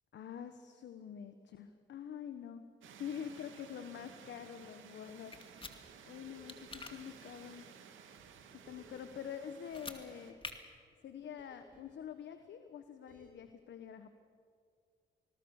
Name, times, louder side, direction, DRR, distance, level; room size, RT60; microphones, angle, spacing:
voice 1, 0.1-5.4 6.1-7.6 8.5-10.4 11.0-14.1, left 8 dB, 65° left, 9 dB, 1.3 m, -46 dB
sound 1, 2.8-10.3, right 7 dB, 80° right, 2.5 m, -56 dB
sound 2, 5.3-5.7 6.5-6.9 9.6-10.0 10.4-10.5, left 3 dB, 25° left, 2.3 m, -45 dB
sound 3, 6.2-7.0 8.7-9.3 11.4-12.0 13.1-13.3, equal, 45° right, 7.0 m, -59 dB
26.5 x 20.5 x 6.5 m, 2.2 s
cardioid pair, 90°, 20 cm